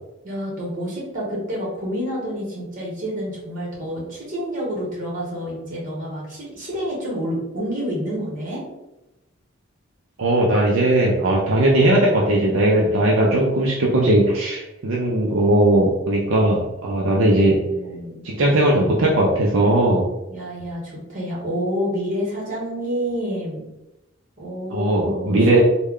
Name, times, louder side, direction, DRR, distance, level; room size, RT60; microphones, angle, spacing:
voice 1, 0.2-8.6 17.0-18.2 20.3-23.6 24.4-25.6, equal, 35° right, -4 dB, 1.2 m, -28 dB
voice 2, 10.2-17.6 18.2-20.0 24.7-25.6, right 1 dB, 65° right, -3 dB, 0.5 m, -18 dB
3.2 x 2.2 x 3.6 m, 0.95 s
head